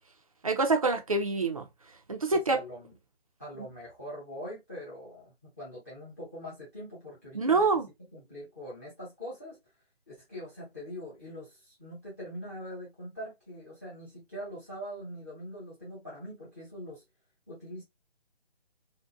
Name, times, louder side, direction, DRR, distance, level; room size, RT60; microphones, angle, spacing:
voice 1, 0.4-1.7 2.1-2.6 7.3-7.8, right 3 dB, 35° right, 0.4 m, -26 dB
voice 2, 2.3-2.9 3.4-7.7 8.0-9.6 10.1-17.0 17.5-17.8, equal, 15° left, 0.6 m, -43 dB
2.6 x 2.1 x 2.3 m
figure-of-eight pair, 150°, 32 cm